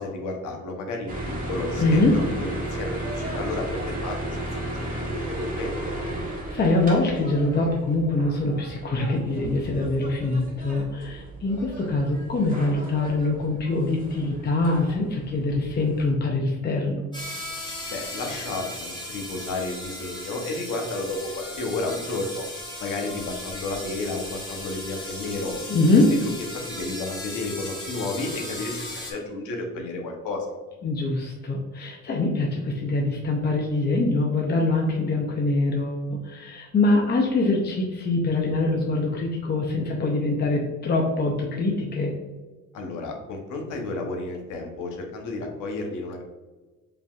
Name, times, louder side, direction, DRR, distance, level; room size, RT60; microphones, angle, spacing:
voice 1, 0.0-5.9 17.9-22.5 22.8-25.6 26.5-30.6 42.7-46.2, left 2 dB, 85° left, 1 dB, 0.9 m, -32 dB
sound 1, 1.1-16.1, right 1 dB, 25° right, 1.3 m, -34 dB
voice 2, 1.8-2.2 6.5-17.1 25.7-26.1 30.8-42.1, left 2 dB, 35° left, 0 dB, 0.6 m, -24 dB
sound 2, 17.1-29.1, left 1 dB, 15° left, 1.3 m, -37 dB
5.1 x 2.9 x 2.4 m, 1.2 s
cardioid pair, 90°, 30 cm